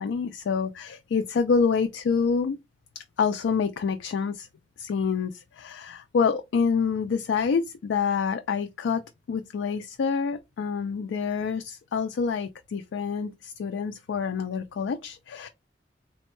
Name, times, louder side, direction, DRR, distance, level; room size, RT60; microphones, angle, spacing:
voice 1, 0.0-2.6 3.0-4.5 4.8-15.5, left 5 dB, 80° left, 0.3 m, -27 dB
3.4 x 2.1 x 3.0 m
head